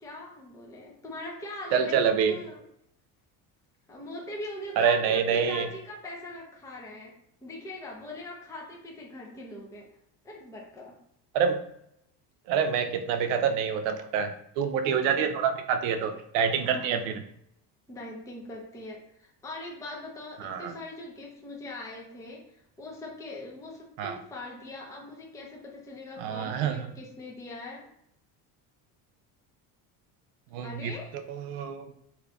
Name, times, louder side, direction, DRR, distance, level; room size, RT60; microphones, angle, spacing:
voice 1, 0.0-2.6 3.9-7.1 7.4-9.9 10.2-11.0 16.6-17.2 17.9-27.9 30.6-31.2, left 2 dB, 10° left, -1 dB, 0.5 m, -41 dB
voice 2, 1.7-2.4 4.8-5.6 11.3-11.6 12.5-17.2 20.4-20.7 24.0-24.1 26.2-26.8 30.5-30.9 31.3-31.9, right 7 dB, 80° right, 7 dB, 0.6 m, -26 dB
2.7 x 2.4 x 3.2 m, 0.74 s
cardioid pair, 110°, 43 cm